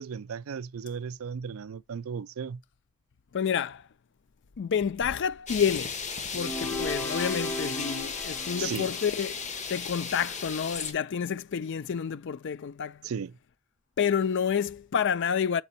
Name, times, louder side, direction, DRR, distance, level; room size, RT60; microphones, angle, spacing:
voice 1, 0.0-2.6 8.6-8.9 13.0-13.3, right 6 dB, 70° right, 0.4 m, -35 dB
voice 2, 3.3-3.8 4.6-6.0 6.3-9.4 9.7-13.0 14.0-15.6, left 7 dB, 55° left, 0.4 m, -29 dB
sound 1, 5.5-10.9, left 5 dB, 35° left, 1.2 m, -35 dB
sound 2, 6.3-9.6, left 1 dB, 10° left, 1.2 m, -36 dB
6.7 x 5.1 x 4.0 m
head